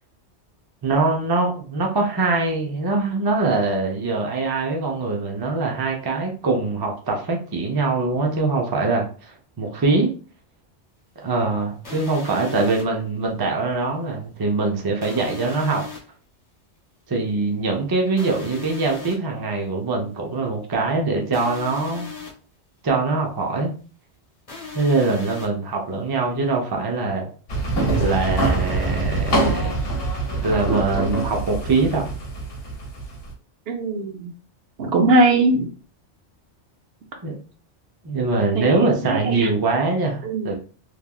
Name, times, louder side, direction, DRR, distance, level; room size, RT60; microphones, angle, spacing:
voice 1, 0.8-9.1 9.6-10.1 11.2-15.8 17.1-22.1 22.8-23.7 24.7-27.3 28.0-29.8 30.4-32.1 37.2-37.4 38.0-40.5, right 3 dB, 30° right, 1 dB, 0.4 m, -23 dB
sound 1, 11.8-12.8 15.0-16.0 18.2-19.1 21.3-22.3 24.5-25.5, left 5 dB, 30° left, 1.1 m, -37 dB
sound 2, 27.5-33.3, right 2 dB, 60° left, 1.1 m, -24 dB
voice 2, 33.7-34.3 34.8-35.7 38.6-39.5 40.2-40.5, right 2 dB, 65° right, 3 dB, 0.8 m, -20 dB
3.2 x 2.3 x 2.3 m, 0.38 s
omnidirectional pair, 1.2 m